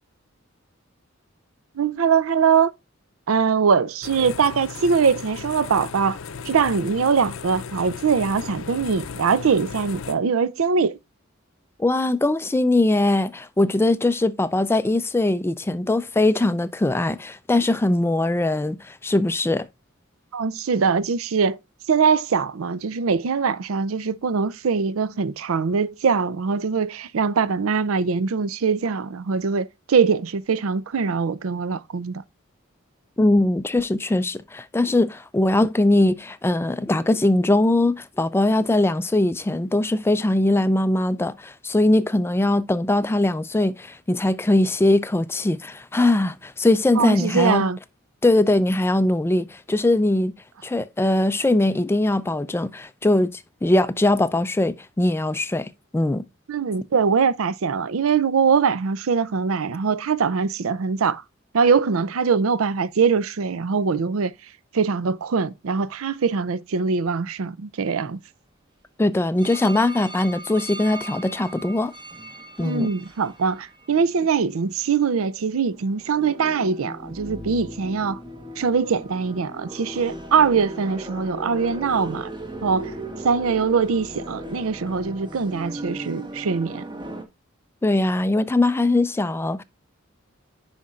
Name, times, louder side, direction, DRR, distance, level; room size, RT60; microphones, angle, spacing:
voice 1, 1.8-2.7 3.3-6.2 6.4-11.0 20.3-21.6 21.9-32.2 47.0-47.8 56.5-61.2 61.5-64.3 64.7-68.2 72.6-78.2 78.6-82.3 82.6-82.9 83.2-86.8, right 5 dB, 80° right, 0.5 m, -22 dB
sound 1, 4.0-10.1, left 6 dB, 70° left, 0.6 m, -36 dB
voice 2, 11.8-19.7 33.2-47.6 48.2-50.3 50.6-56.2 69.0-71.9 72.6-72.9 87.8-89.6, left 2 dB, 10° left, 0.3 m, -21 dB
sound 2, 69.4-74.7 75.3-75.4 75.8-87.2, right 1 dB, 25° right, 1.1 m, -37 dB
9.5 x 5.2 x 2.4 m
head